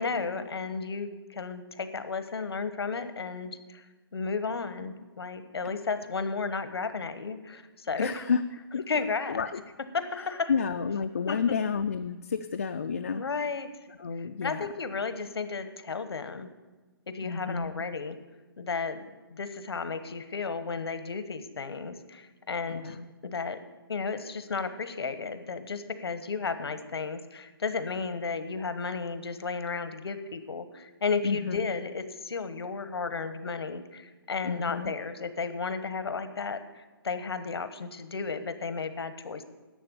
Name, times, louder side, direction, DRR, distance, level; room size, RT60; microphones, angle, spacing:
voice 1, 0.0-3.8 4.1-8.2 8.9-9.4 9.9-10.5 11.3-11.6 13.1-13.7 14.4-16.5 17.1-18.2 18.6-19.0 19.3-23.0 23.2-23.6 23.9-39.4, left 4 dB, 85° left, 11 dB, 1.1 m, -33 dB
voice 2, 8.0-8.4 8.7-9.6 10.5-13.2 14.0-14.7 17.2-17.8 22.7-23.0 31.2-31.7 34.4-34.9, left 6 dB, 40° left, 7 dB, 0.4 m, -30 dB
11.0 x 7.7 x 6.9 m, 1.3 s
hypercardioid pair, 175°, 13 cm